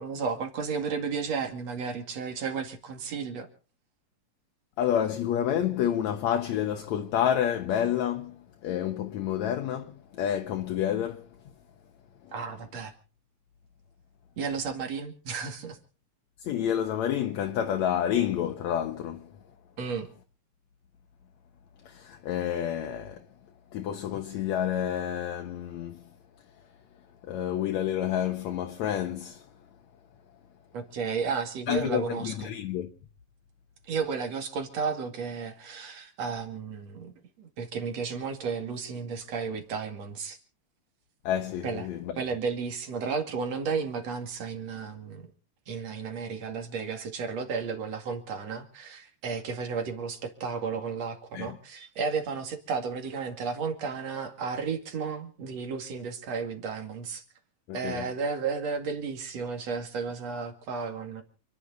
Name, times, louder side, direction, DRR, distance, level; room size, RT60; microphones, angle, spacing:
voice 1, 0.0-3.5 12.3-12.9 14.4-15.8 19.8-20.1 30.7-32.3 33.8-37.1 37.4-40.4 41.6-41.9 42.2-45.3 45.7-57.2 57.7-61.2, right 5 dB, 60° right, 3.3 m, -33 dB
voice 2, 4.8-11.3 12.2-12.3 16.4-19.4 21.8-23.3 23.7-26.0 27.2-29.5 31.7-32.9 41.2-42.1 51.3-51.6 57.7-58.1, left 10 dB, 70° left, 2.3 m, -29 dB
28.0 x 11.0 x 3.9 m
omnidirectional pair, 3.4 m